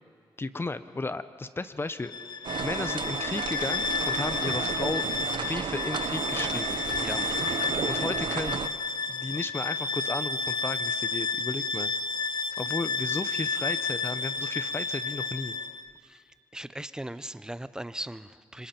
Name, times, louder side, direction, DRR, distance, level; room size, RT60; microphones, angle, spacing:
voice 1, 0.4-5.1 5.4-6.8 7.9-8.6 9.1-11.9 12.6-15.6, left 3 dB, 25° left, 12 dB, 0.8 m, -34 dB
Bowed string instrument, 2.0-15.9, left 4 dB, 60° left, 0.6 m, -31 dB
sound 1, 2.4-8.7, right 7 dB, 75° right, 0.6 m, -33 dB
voice 2, 7.0-7.3 12.3-12.4 16.0-16.2 16.5-18.7, right 1 dB, 10° right, 14 dB, 0.6 m, -38 dB
26.0 x 25.0 x 4.4 m, 2.3 s
cardioid pair, 80°, 8 cm